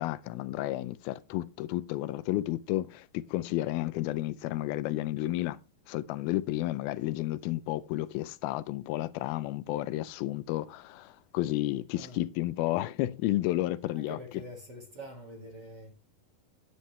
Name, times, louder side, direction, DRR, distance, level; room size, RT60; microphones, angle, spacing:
voice 1, 0.0-5.6 5.9-14.2, left 16 dB, 90° left, 2.5 m, -32 dB
voice 2, 13.9-15.9, equal, 35° right, 1.9 m, -45 dB
9.5 x 9.4 x 3.2 m
omnidirectional pair, 4.2 m